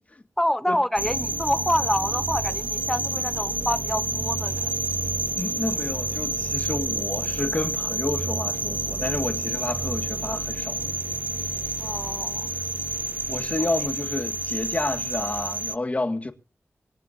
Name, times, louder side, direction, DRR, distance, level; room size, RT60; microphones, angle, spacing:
voice 1, 0.4-4.7 11.8-12.5 13.6-13.7, left 1 dB, 5° left, 1.3 m, -27 dB
sound 1, 1.0-15.8, right 3 dB, 35° right, 0.6 m, -29 dB
voice 2, 5.4-10.8 13.3-16.3, left 2 dB, 30° left, 1.9 m, -30 dB
25.5 x 10.5 x 2.7 m
wide cardioid pair, 85°, 5 cm